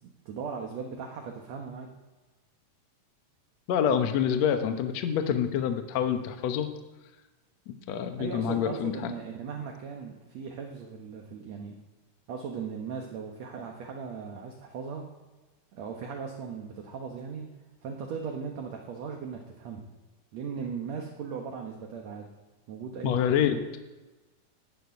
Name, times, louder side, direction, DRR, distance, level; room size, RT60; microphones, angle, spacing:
voice 1, 0.0-1.9 8.2-11.8 12.3-15.1 15.7-17.5 17.8-19.9 20.3-22.3 22.7-23.8, right 6 dB, 65° right, 1 dB, 1.8 m, -38 dB
voice 2, 3.7-6.7 7.7-9.1 23.0-23.5, left 8 dB, 75° left, 7 dB, 1.6 m, -27 dB
13.0 x 10.5 x 9.5 m, 1.2 s
omnidirectional pair, 4.6 m